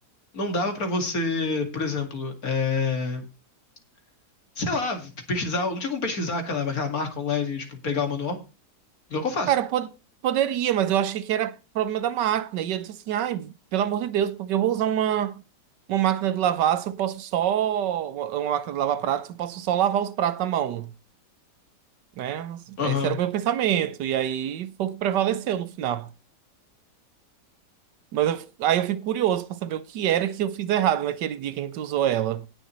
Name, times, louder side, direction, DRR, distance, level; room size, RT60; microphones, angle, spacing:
voice 1, 0.3-3.2 4.6-8.4 9.1-9.5 22.8-23.2, left 4 dB, 55° left, 2.5 m, -27 dB
voice 2, 9.5-9.9 10.2-15.4 15.9-20.9 22.2-26.1 28.1-32.5, right 11 dB, 85° right, 1.5 m, -25 dB
18.0 x 6.8 x 3.1 m
omnidirectional pair, 1.8 m